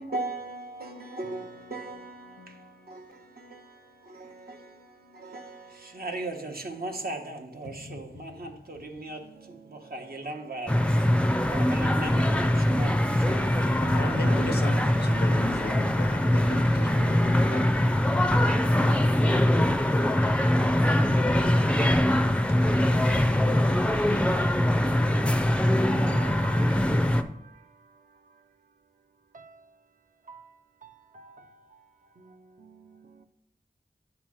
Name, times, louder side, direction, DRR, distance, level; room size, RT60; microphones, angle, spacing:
voice 1, 0.0-9.3 9.7-10.8 11.5-14.4 17.7-17.8, right 2 dB, 70° right, 0.9 m, -38 dB
voice 2, 1.2-2.8 7.6-8.3 13.8-17.9 18.7-19.6 22.6-23.2, left 2 dB, 90° left, 0.7 m, -37 dB
voice 3, 9.2-10.6 13.8-17.6 25.9-28.0 29.3-29.7 30.3-31.9 32.2-33.3, right 4 dB, 50° right, 0.5 m, -48 dB
sound 1, 10.7-27.2, left 1 dB, 5° left, 0.4 m, -23 dB
8.4 x 3.0 x 6.1 m
wide cardioid pair, 75°, 17 cm